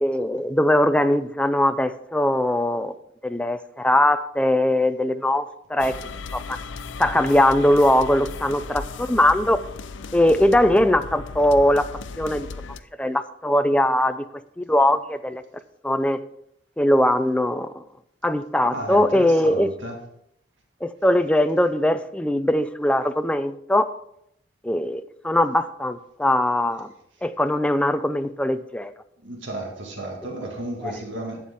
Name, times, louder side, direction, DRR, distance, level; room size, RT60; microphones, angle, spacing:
voice 1, 0.0-2.9 3.2-5.9 6.3-6.6 7.0-9.6 10.1-11.9 12.2-12.5 13.0-14.2 14.6-15.4 15.8-16.2 16.8-17.7 18.2-19.7 20.8-23.9 24.6-26.9 27.2-28.9 30.8-30.9, left 1 dB, 5° left, 10 dB, 0.4 m, -21 dB
sound 1, 5.8-12.8, left 4 dB, 85° left, 0.5 m, -36 dB
voice 2, 18.6-20.0 29.2-31.4, right 1 dB, 85° right, 1 dB, 2.0 m, -33 dB
11.5 x 8.5 x 3.6 m, 0.74 s
head